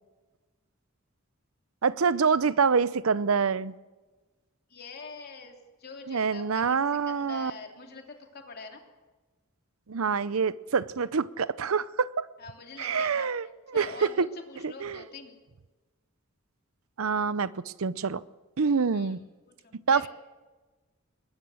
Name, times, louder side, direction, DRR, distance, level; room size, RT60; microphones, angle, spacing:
voice 1, 1.8-3.7 6.1-7.5 9.9-12.3 12.8-14.3 14.6-15.0 17.0-18.2 18.6-19.2 19.9-20.1, right 5 dB, 85° right, 0.7 m, -26 dB
voice 2, 4.7-6.8 7.1-8.8 12.4-15.3 18.9-19.2 19.6-20.1, left 4 dB, 50° left, 3.0 m, -45 dB
22.0 x 19.5 x 6.4 m
head